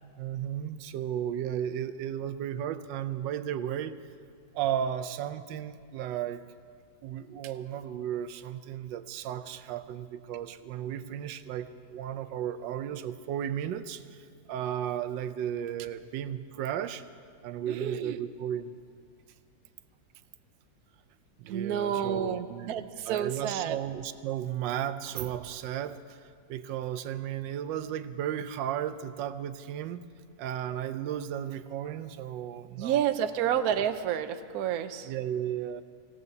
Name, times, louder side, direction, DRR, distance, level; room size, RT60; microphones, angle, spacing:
voice 1, 0.2-3.9 4.5-6.4 7.0-17.0 17.4-18.8 21.4-30.1 30.4-33.1 35.0-35.8, right 10 dB, 85° right, 11 dB, 1.3 m, -34 dB
voice 2, 17.7-18.2 21.5-23.8 32.8-35.1, right 9 dB, 65° right, 9 dB, 1.0 m, -30 dB
25.0 x 16.5 x 2.7 m, 2.2 s
omnidirectional pair, 1.9 m